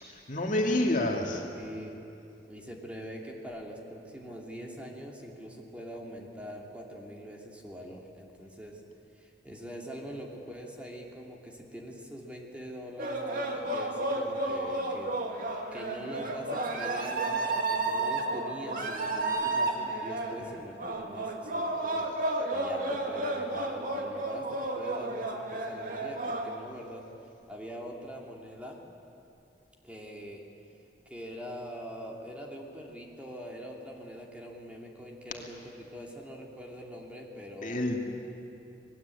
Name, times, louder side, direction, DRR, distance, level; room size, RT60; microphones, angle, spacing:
voice 1, 0.1-1.4 37.6-38.0, left 1 dB, 45° left, 1 dB, 2.5 m, -28 dB
voice 2, 1.6-2.0 2.5-8.8 9.1-22.1 22.5-27.1 27.5-28.8 29.8-30.4 31.1-37.9, equal, 5° right, -1 dB, 2.6 m, -43 dB
sound 1, 13.0-26.6, right 2 dB, 50° right, 2.3 m, -32 dB
27.5 x 20.0 x 8.4 m, 2.7 s
head